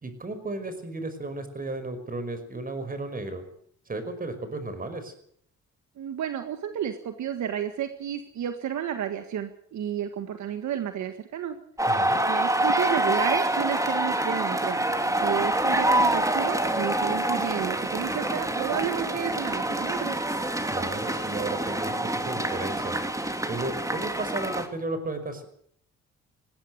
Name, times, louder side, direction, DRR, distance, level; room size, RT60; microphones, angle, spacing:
voice 1, 0.0-3.4 3.9-5.1 11.9-12.2 20.7-23.0 23.5-25.4, right 2 dB, 30° right, 9 dB, 5.4 m, -34 dB
voice 2, 6.0-11.6 12.3-14.9 15.2-20.1, right 9 dB, 70° right, 8 dB, 1.7 m, -31 dB
sound 1, 11.8-24.7, right 1 dB, 10° right, 2.7 m, -26 dB
20.0 x 16.5 x 8.0 m, 0.65 s
cardioid pair, 90°, 30 cm